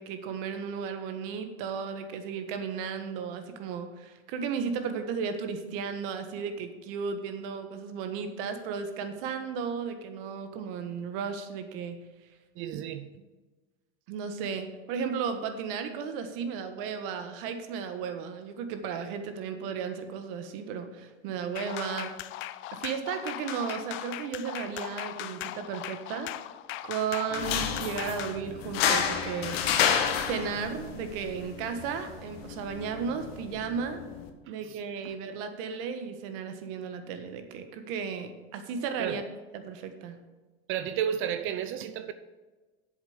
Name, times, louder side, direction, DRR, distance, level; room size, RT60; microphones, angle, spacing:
voice 1, 0.0-12.0 14.1-22.1 22.7-26.3 26.8-29.6 30.3-34.0 34.5-39.2 39.5-40.2, right 6 dB, 65° right, 1.5 m, -34 dB
voice 2, 12.6-13.1 34.6-34.8 39.0-39.2 40.7-42.1, right 9 dB, 40° right, 0.6 m, -32 dB
sound 1, 21.6-28.4, left 14 dB, 40° left, 0.5 m, -39 dB
sound 2, 27.3-34.3, left 8 dB, 75° left, 1.4 m, -31 dB
8.3 x 7.3 x 7.0 m
supercardioid pair, 115°, 30 cm